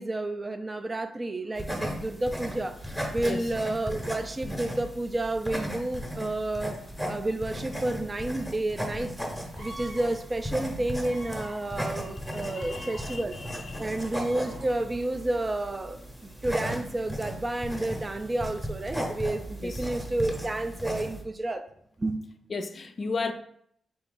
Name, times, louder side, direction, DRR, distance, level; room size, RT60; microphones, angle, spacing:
voice 1, 0.0-13.4 13.8-21.6 22.0-22.2, right 2 dB, 30° right, 0.4 m, -31 dB
sound 1, 1.6-21.2, equal, 5° right, 0.8 m, -36 dB
sound 2, 9.4-19.9, right 1 dB, 65° right, 1.2 m, -51 dB
voice 2, 12.3-13.9 19.6-19.8 22.5-23.3, left 4 dB, 45° left, 0.3 m, -35 dB
3.9 x 2.3 x 3.7 m
cardioid pair, 65°, 0 cm